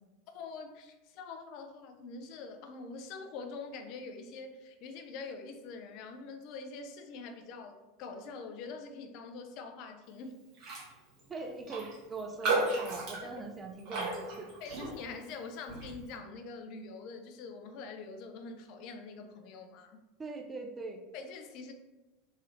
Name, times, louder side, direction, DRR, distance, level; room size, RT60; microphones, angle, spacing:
voice 1, 0.3-10.3 13.2-13.4 14.6-20.0 21.1-21.7, left 4 dB, 50° left, 6 dB, 0.5 m, -44 dB
Raindrop, 10.6-10.9 11.2-11.3 11.7-15.2 15.7-15.9, right 3 dB, 45° right, 1.4 m, -34 dB
voice 2, 11.3-14.5 20.2-21.0, right 3 dB, 20° right, 3 dB, 0.5 m, -41 dB
3.7 x 2.8 x 3.1 m, 1.1 s
figure-of-eight pair, 80°, 0 cm